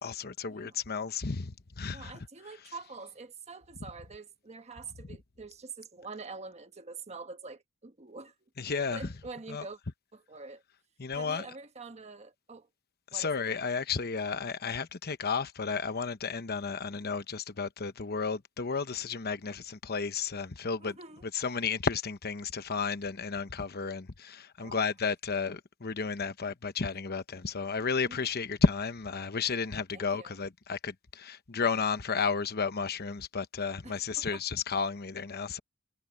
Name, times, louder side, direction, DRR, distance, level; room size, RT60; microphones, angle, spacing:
voice 1, 0.0-2.1 5.1-5.2 8.6-9.1 9.5-9.6 11.0-11.4 13.1-20.9 21.2-35.6, left 5 dB, 50° left, 1.0 m, -32 dB
voice 2, 1.9-8.3 8.9-9.8 10.1-10.6 11.1-12.7 13.1-13.3 20.8-21.3 24.6-24.9 28.1-28.3 29.9-30.4 33.8-34.4, right 4 dB, 30° right, 1.2 m, -45 dB
head